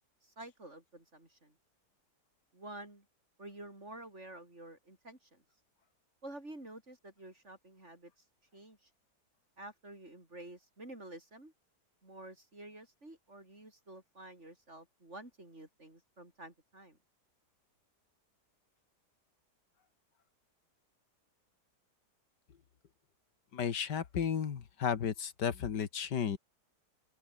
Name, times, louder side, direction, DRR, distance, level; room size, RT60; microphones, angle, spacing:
voice 1, 0.2-1.5 2.5-3.0 3.4-5.4 6.2-8.1 8.5-8.9 9.6-11.5 12.0-17.0, right 1 dB, 40° right, 6.7 m, -50 dB
voice 2, 23.5-26.4, left 7 dB, 80° left, 2.2 m, -33 dB
open air
omnidirectional pair, 1.8 m